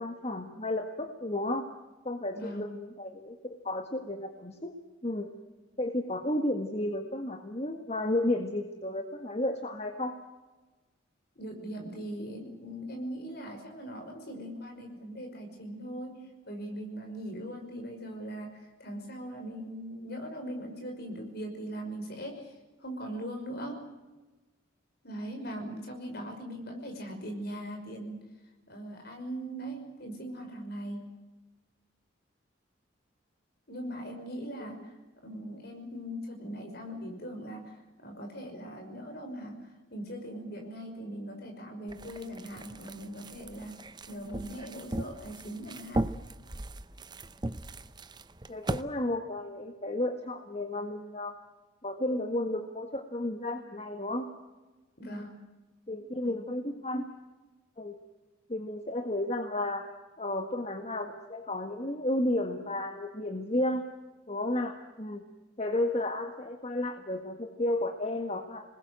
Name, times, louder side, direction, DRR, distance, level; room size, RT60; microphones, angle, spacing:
voice 1, 0.0-1.6 2.0-4.7 5.0-5.3 5.8-10.2 34.6-34.8 48.5-51.3 51.8-54.3 55.0-55.2 55.9-57.0 57.8-58.0 58.5-59.8 60.2-63.8 64.3-65.2 65.6-68.6, left 1 dB, 30° left, 4 dB, 1.6 m, -32 dB
voice 2, 2.3-2.7 11.4-22.5 22.8-23.8 25.0-28.2 28.7-31.1 33.7-34.8 35.2-43.8 44.1-46.0 55.0-55.3 56.2-56.5, right 1 dB, 50° left, 3 dB, 5.8 m, -40 dB
sound 1, 41.9-48.8, right 1 dB, 20° right, 0.7 m, -38 dB
27.5 x 20.5 x 7.8 m, 1.2 s
head